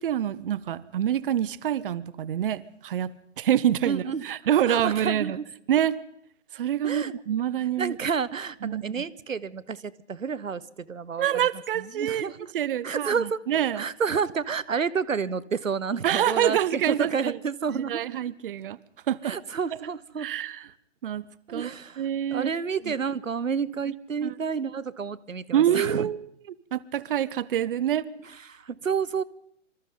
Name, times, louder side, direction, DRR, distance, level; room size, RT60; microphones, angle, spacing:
voice 1, 0.0-5.4 5.7-6.0 6.5-8.0 8.6-9.0 11.2-13.9 16.0-17.4 17.7-18.8 19.1-19.3 20.2-20.7 21.0-21.7 22.0-22.5 22.8-22.9 24.2-24.3 25.5-26.3 26.7-28.1, right 10 dB, 45° right, 20 dB, 0.9 m, -26 dB
voice 2, 3.8-4.2 4.7-5.4 6.8-7.1 7.8-10.6 10.9-11.5 12.0-12.4 12.8-13.4 13.8-18.0 19.2-20.3 21.5-22.0 22.3-26.1 28.5-29.2, right 6 dB, 90° right, 19 dB, 1.2 m, -29 dB
26.0 x 25.5 x 3.9 m, 0.73 s
hypercardioid pair, 140°, 38 cm